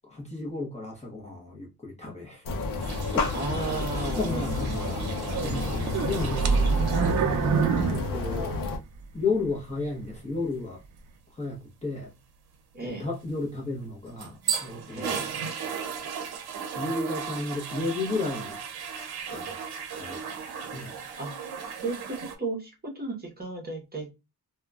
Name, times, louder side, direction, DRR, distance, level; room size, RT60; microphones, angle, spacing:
voice 1, 0.0-2.5 2.8-4.7 5.4-6.9 7.9-8.5 9.1-10.8 11.3-12.1 12.8-15.2 16.7-18.6 19.3-19.6 20.0-21.0, left 3 dB, 20° left, 0.7 m, -33 dB
sound 1, 2.5-8.8, left 3 dB, 60° left, 0.6 m, -31 dB
sound 2, 2.8-7.4 7.7-8.0 13.8-22.3, right 7 dB, 80° right, 0.7 m, -36 dB
voice 2, 3.3-5.2 12.7-13.1 14.9-15.3 21.2-21.3 21.8-24.1, right 3 dB, 25° right, 0.8 m, -34 dB
sound 3, 5.3-9.0 9.5-9.6 10.2-10.3, right 5 dB, 50° right, 0.5 m, -26 dB
2.8 x 2.2 x 2.2 m
wide cardioid pair, 175°, 38 cm